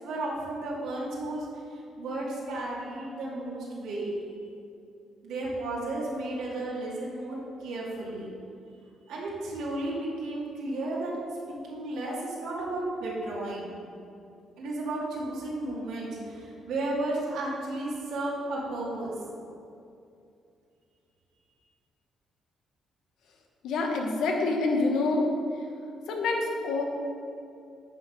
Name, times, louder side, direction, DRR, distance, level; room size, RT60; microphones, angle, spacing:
voice 1, 0.0-1.5 2.0-4.1 5.2-8.3 9.1-11.1 11.5-13.7 14.6-19.1, right 2 dB, 85° right, -6 dB, 2.1 m, -33 dB
voice 2, 23.6-25.2 26.1-26.8, left 3 dB, 80° left, 1 dB, 1.3 m, -26 dB
10.0 x 4.7 x 5.3 m, 2.6 s
cardioid pair, 90°, 0 cm